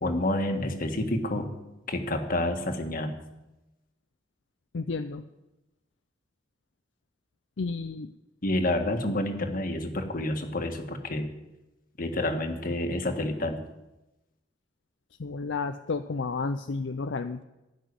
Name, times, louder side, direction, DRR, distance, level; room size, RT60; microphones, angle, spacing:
voice 1, 0.0-1.5 1.9-3.1 8.4-11.3 12.0-13.6, left 1 dB, 50° left, 5 dB, 1.7 m, -29 dB
voice 2, 4.7-5.2 7.6-8.1 15.2-17.4, left 4 dB, 70° left, 9 dB, 0.5 m, -31 dB
16.0 x 6.1 x 9.7 m, 0.99 s
head